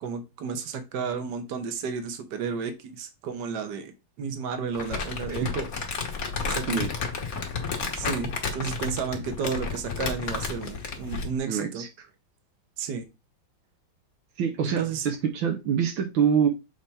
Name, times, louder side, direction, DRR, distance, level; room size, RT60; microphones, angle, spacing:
voice 1, 0.0-3.9 4.2-5.7 6.5-6.8 7.9-11.8 12.8-13.0 14.8-15.1, right 6 dB, 60° right, 1.6 m, -32 dB
Crumpling crinkling, 4.7-11.4, left 4 dB, 50° left, 1.5 m, -32 dB
voice 2, 11.5-12.1 14.4-16.5, right 7 dB, 75° right, 1.6 m, -25 dB
7.0 x 3.3 x 4.2 m
omnidirectional pair, 2.2 m